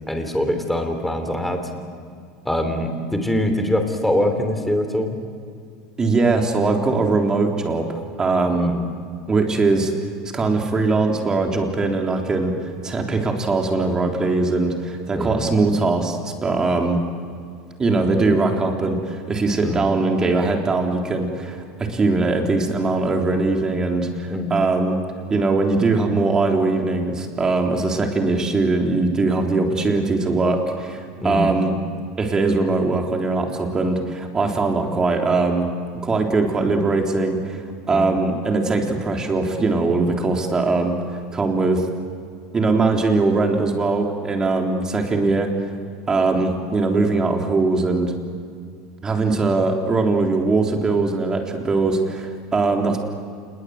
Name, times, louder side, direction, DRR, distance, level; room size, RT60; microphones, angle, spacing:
voice 1, 0.1-1.6 2.4-5.2 8.5-8.8 15.1-15.4 19.6-19.9 24.3-24.6 31.2-31.6 37.9-38.2, left 1 dB, 5° left, 5 dB, 3.2 m, -23 dB
voice 2, 6.0-8.7 9.3-9.9 10.3-17.0 17.8-25.0 25.3-31.7 32.2-35.7 36.0-41.0 41.3-41.8 42.5-45.5 46.1-48.1 49.0-53.0, right 3 dB, 20° right, 2 dB, 3.6 m, -21 dB
27.5 x 21.5 x 7.9 m, 2.2 s
supercardioid pair, 135°, 3 cm